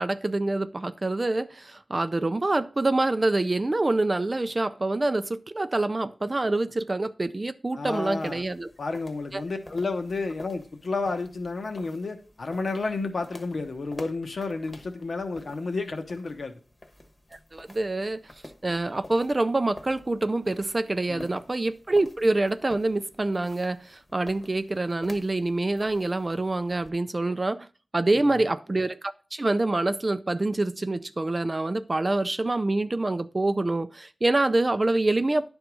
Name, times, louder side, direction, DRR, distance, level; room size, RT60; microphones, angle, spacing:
voice 1, 0.0-8.7 9.3-9.4 17.5-18.2 18.6-27.7 27.9-35.5, right 2 dB, 30° right, 0.4 m, -26 dB
voice 2, 7.7-8.4 8.8-16.5 21.1-21.3 28.1-28.4, left 3 dB, 70° left, 1.0 m, -31 dB
sound 1, 7.9-26.9, left 1 dB, 30° left, 1.1 m, -50 dB
10.5 x 3.6 x 6.0 m
wide cardioid pair, 90°, 0 cm